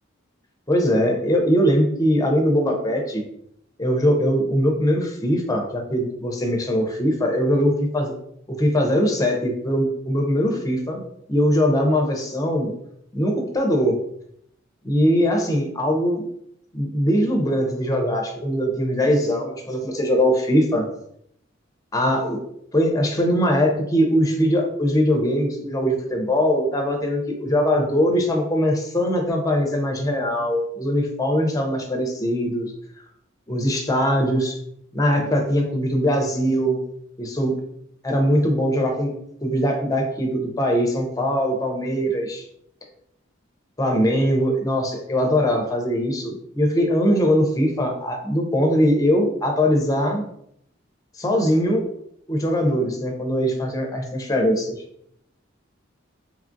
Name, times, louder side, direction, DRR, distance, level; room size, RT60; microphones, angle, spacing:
voice 1, 0.7-3.2 3.8-8.1 8.5-11.0 11.3-12.7 13.1-14.0 14.8-16.2 16.7-20.9 21.9-22.4 22.7-32.7 33.5-34.6 34.9-36.8 37.2-37.5 38.0-39.1 39.4-42.4 43.8-50.2 51.2-51.9 52.3-54.8, equal, 20° left, 2 dB, 0.5 m, -21 dB
3.0 x 2.3 x 2.5 m, 0.72 s
head